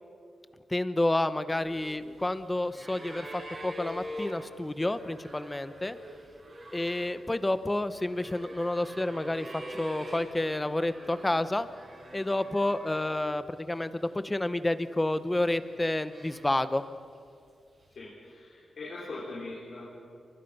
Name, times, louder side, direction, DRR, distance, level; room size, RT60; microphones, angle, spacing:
voice 1, 0.7-6.0 6.7-11.7 12.1-16.8, left 1 dB, 15° left, 12 dB, 0.9 m, -30 dB
sound 1, 1.5-13.2 13.5-14.4 15.1-16.9 17.9-18.0, equal, 35° right, 7.3 m, -45 dB
voice 2, 17.9-19.8, left 2 dB, 60° left, -5 dB, 5.2 m, -41 dB
28.5 x 25.0 x 5.5 m, 2.4 s
wide cardioid pair, 110°, 0 cm